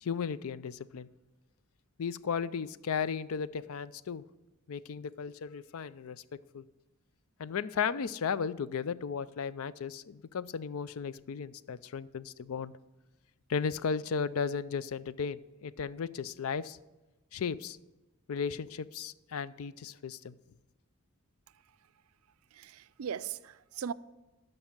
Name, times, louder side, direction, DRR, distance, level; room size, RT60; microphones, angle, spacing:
voice 1, 0.0-1.1 2.0-4.2 4.7-6.2 6.5-6.6 7.4-12.7 13.5-16.8 17.3-17.8 18.3-20.3, left 6 dB, 70° left, 0.4 m, -35 dB
voice 2, 22.6-23.9, right 8 dB, 70° right, 0.4 m, -38 dB
13.0 x 5.4 x 8.8 m
head